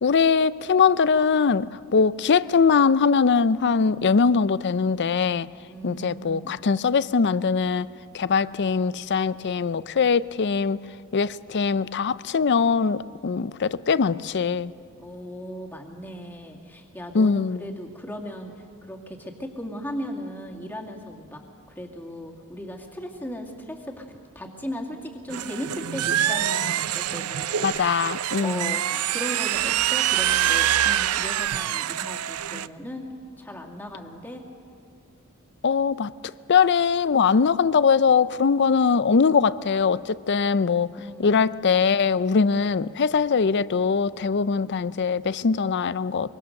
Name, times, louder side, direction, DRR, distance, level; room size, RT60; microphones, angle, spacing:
voice 1, 0.0-5.5 5.8-7.9 8.1-10.8 11.1-14.7 17.1-17.6 27.6-28.7 35.6-36.1 36.5-40.9 41.2-46.3, left 5 dB, 50° left, 0.5 m, -21 dB
voice 2, 5.7-6.5 15.0-21.4 21.8-27.8 28.4-33.0 33.4-34.4 41.0-41.4, equal, 10° left, 2.2 m, -37 dB
sound 1, 25.3-32.7, right 11 dB, 85° right, 0.5 m, -25 dB
24.0 x 23.0 x 6.6 m
head